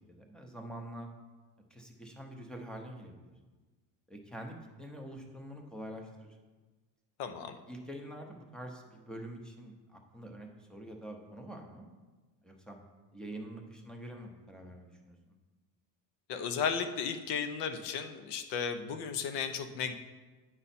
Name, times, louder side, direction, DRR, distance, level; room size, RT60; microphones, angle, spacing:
voice 1, 0.1-1.1 1.7-3.3 4.1-6.4 7.7-11.8 12.4-12.8 13.1-15.2, right 1 dB, ahead, 2 dB, 0.6 m, -46 dB
voice 2, 7.2-7.6 16.3-19.9, left 6 dB, 70° left, 9 dB, 0.8 m, -34 dB
9.0 x 5.5 x 4.2 m, 1.3 s
cardioid pair, 160°, 42 cm